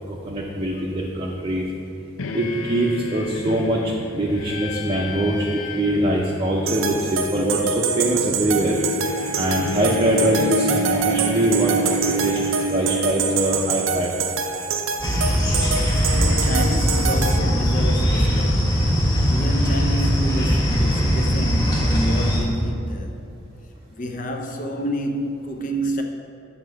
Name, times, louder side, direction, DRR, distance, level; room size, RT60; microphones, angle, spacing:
voice 1, 0.1-1.6 2.3-3.8 4.1-8.8 9.4-12.4 12.7-14.1, right 1 dB, 25° right, 0.6 m, -23 dB
sound 1, 2.2-14.2, equal, 85° left, 0.6 m, -29 dB
sound 2, 6.7-17.4, right 5 dB, 80° right, 0.6 m, -26 dB
sound 3, 15.0-22.4, equal, 20° left, 1.5 m, -20 dB
voice 2, 16.1-18.7 19.2-23.2 24.0-26.0, equal, 40° left, 0.6 m, -29 dB
8.3 x 4.3 x 6.7 m
head